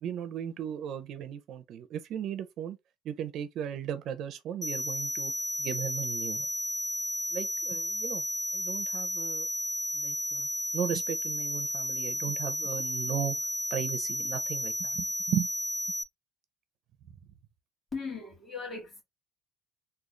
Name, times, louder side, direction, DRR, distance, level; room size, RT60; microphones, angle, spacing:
voice 1, 0.0-2.8 3.0-5.3 5.6-6.5 7.3-8.2 8.5-9.5 9.9-10.5 10.7-13.4 13.7-15.5, right 10 dB, 50° right, 0.5 m, -36 dB
sound 1, 4.6-16.0, left 1 dB, 10° left, 0.4 m, -33 dB
voice 2, 17.9-19.0, left 4 dB, 25° left, 1.9 m, -38 dB
3.7 x 2.3 x 3.1 m
cardioid pair, 165°, 0 cm